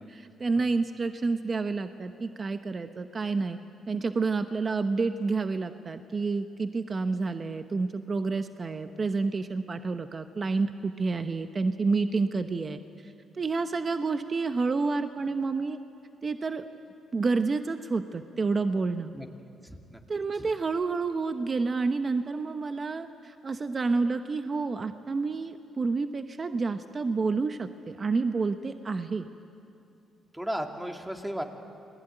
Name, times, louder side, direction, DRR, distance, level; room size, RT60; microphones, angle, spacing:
voice 1, 0.0-3.6 3.9-15.8 16.2-16.6 17.1-19.1 20.1-29.3, right 4 dB, 35° right, 8 dB, 1.0 m, -29 dB
voice 2, 19.6-20.0 20.4-20.5 30.3-31.4, equal, 5° right, 3 dB, 2.5 m, -35 dB
29.0 x 20.5 x 9.1 m, 2.6 s
cardioid pair, 90°, 0 cm